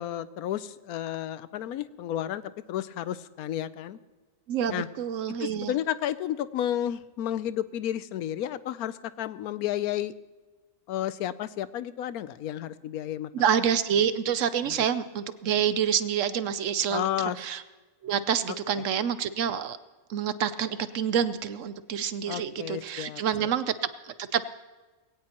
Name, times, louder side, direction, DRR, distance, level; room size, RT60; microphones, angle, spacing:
voice 1, 0.0-2.4 2.7-4.0 4.7-4.9 5.4-10.1 10.9-13.3 14.6-14.9 16.9-17.4 22.3-23.5, left 11 dB, 85° left, 15 dB, 1.1 m, -32 dB
voice 2, 4.5-5.7 13.3-17.1 17.4-17.6 18.0-19.8 20.1-24.4, right 8 dB, 65° right, 13 dB, 0.9 m, -27 dB
20.5 x 17.0 x 3.0 m, 1.3 s
omnidirectional pair, 1.5 m